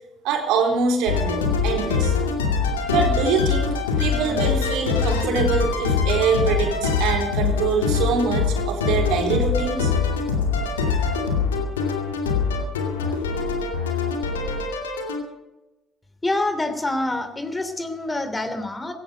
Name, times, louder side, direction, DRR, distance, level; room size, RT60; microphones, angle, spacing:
voice 1, 0.2-2.1 2.9-3.7 4.0-9.9, right 5 dB, 70° right, 3 dB, 3.9 m, -24 dB
sound 1, 1.1-15.2, left 5 dB, 85° left, 2.4 m, -23 dB
voice 2, 16.2-18.9, left 2 dB, 20° left, 9 dB, 2.9 m, -26 dB
16.5 x 16.0 x 5.2 m, 1.0 s
hypercardioid pair, 55°, 0 cm